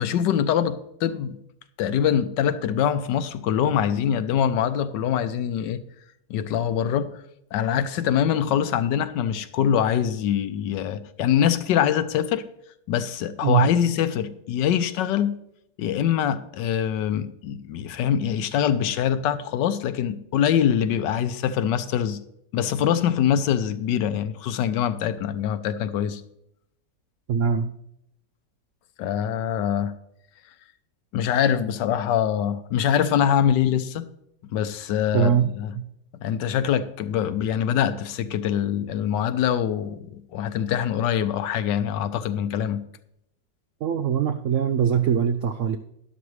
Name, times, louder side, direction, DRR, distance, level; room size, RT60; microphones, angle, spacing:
voice 1, 0.0-1.4 1.8-5.8 6.3-7.2 7.5-12.4 12.9-15.3 15.8-22.2 22.5-26.2 29.0-29.9 31.1-34.1 34.5-35.7 36.2-42.8, left 9 dB, 80° left, 1.3 m, -24 dB
voice 2, 27.3-27.7 35.1-35.5 35.8-35.9 43.8-45.8, right 8 dB, 85° right, 0.6 m, -22 dB
12.0 x 11.0 x 3.2 m
omnidirectional pair, 1.9 m